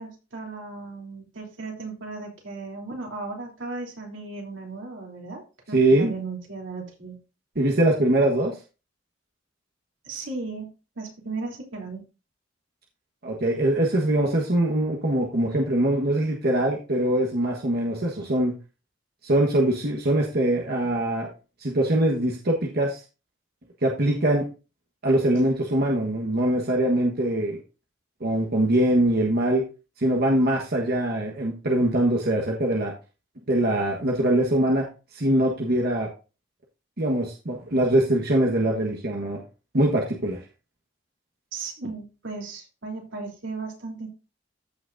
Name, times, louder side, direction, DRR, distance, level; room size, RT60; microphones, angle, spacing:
voice 1, 0.0-7.2 10.0-10.7 10.9-12.0 41.5-44.1, right 3 dB, 85° right, 0 dB, 3.1 m, -36 dB
voice 2, 5.7-6.1 7.5-8.5 13.2-18.5 19.2-21.3 21.6-23.0 23.8-24.5 25.0-27.6 28.2-29.6 30.0-32.9 33.5-34.8 35.1-36.1 37.0-39.4 39.7-40.4, right 1 dB, 55° right, -1 dB, 1.4 m, -22 dB
14.5 x 6.0 x 2.6 m, 0.32 s
head